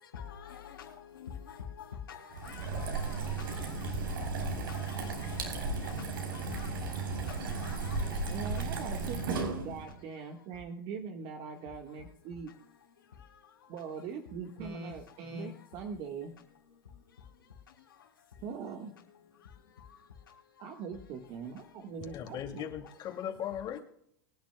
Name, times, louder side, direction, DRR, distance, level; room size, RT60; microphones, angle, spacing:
voice 1, 0.1-8.6, left 7 dB, 90° left, 3.8 m, -45 dB
sound 1, 2.3-9.9, right 4 dB, 80° right, 4.6 m, -35 dB
voice 2, 8.3-12.5 13.7-16.3 18.4-18.9 20.6-22.6, right 5 dB, 45° right, 1.6 m, -41 dB
voice 3, 22.0-23.8, left 9 dB, 40° left, 2.4 m, -38 dB
24.0 x 10.5 x 2.3 m
hypercardioid pair, 105°, 11 cm